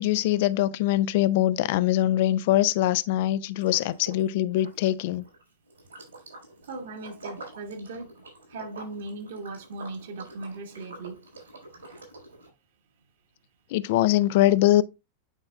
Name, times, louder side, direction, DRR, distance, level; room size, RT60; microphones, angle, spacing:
voice 1, 0.0-5.2 13.7-14.8, left 14 dB, 50° left, 0.4 m, -23 dB
Liquid, 3.6-4.3 4.5-12.5, right 2 dB, 75° right, 3.6 m, -46 dB
voice 2, 6.7-8.1 8.5-11.2, right 2 dB, 60° right, 1.6 m, -38 dB
9.1 x 5.2 x 2.3 m
figure-of-eight pair, 90°, 0 cm